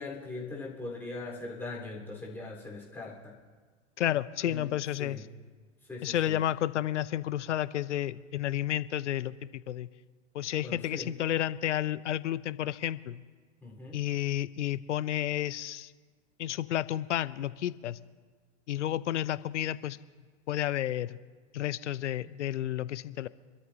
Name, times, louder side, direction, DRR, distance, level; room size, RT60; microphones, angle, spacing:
voice 1, 0.0-3.4 4.5-4.7 5.0-5.3 5.8-6.4 10.6-11.2 13.6-14.0 22.2-22.3, left 3 dB, 5° left, -4 dB, 4.1 m, -41 dB
voice 2, 4.0-5.2 6.0-9.9 10.3-13.2 13.9-15.9 16.4-18.0 18.7-20.0 20.5-21.2 21.5-23.3, left 12 dB, 70° left, 17 dB, 0.6 m, -31 dB
26.5 x 13.0 x 2.8 m, 1.5 s
figure-of-eight pair, 100°, 37 cm